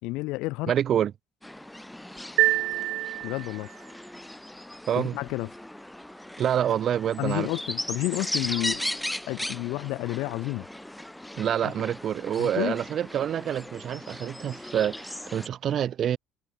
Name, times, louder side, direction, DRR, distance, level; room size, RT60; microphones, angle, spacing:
voice 1, 0.0-0.7 3.2-3.7 5.0-5.5 7.2-8.8 9.3-10.7 11.6-11.7 12.4-12.8, left 21 dB, 60° left, 2.0 m, -30 dB
voice 2, 0.7-1.1 4.9-5.2 6.4-7.5 11.3-16.2, right 10 dB, 30° right, 3.1 m, -27 dB
sound 1, 1.4-15.5, left 1 dB, 5° left, 1.9 m, -37 dB
sound 2, 2.4-3.8, right 17 dB, 50° right, 1.7 m, -26 dB
cardioid pair, 180°, 0 cm